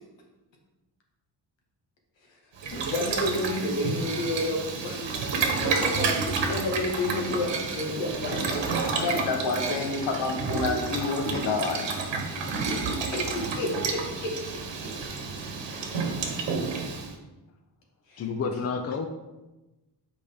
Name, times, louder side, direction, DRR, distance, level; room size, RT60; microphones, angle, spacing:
Boiling, 2.6-17.1, right 4 dB, 75° right, 1.1 m, -30 dB
voice 1, 2.7-9.3 9.8-9.9 13.1-14.4 14.8-14.9 18.1-18.3, left 1 dB, 85° left, 0 dB, 1.7 m, -31 dB
voice 2, 8.9-12.0, left 3 dB, 65° left, 2 dB, 1.1 m, -29 dB
voice 3, 18.2-19.1, left 5 dB, 35° left, 5 dB, 0.5 m, -29 dB
8.1 x 5.0 x 3.5 m, 1.1 s
wide cardioid pair, 150°, 43 cm